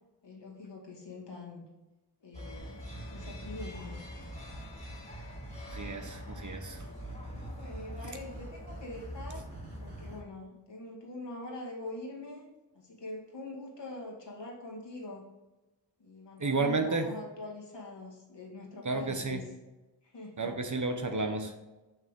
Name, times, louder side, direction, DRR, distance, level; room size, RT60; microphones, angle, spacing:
voice 1, 0.2-1.6 2.2-2.8 3.1-4.0 7.5-9.4 9.8-12.5 12.7-15.3 16.0-19.5 20.0-20.5, left 2 dB, 75° left, -2 dB, 2.2 m, -44 dB
sound 1, 2.3-10.2, left 1 dB, 15° left, 2.3 m, -44 dB
sound 2, 2.5-10.2, right 3 dB, 65° right, 2.1 m, -48 dB
voice 2, 5.7-6.8 16.4-17.1 18.8-19.4 20.4-21.5, right 3 dB, 45° right, 6 dB, 1.0 m, -31 dB
6.5 x 6.0 x 3.6 m, 1.1 s
wide cardioid pair, 65°, 42 cm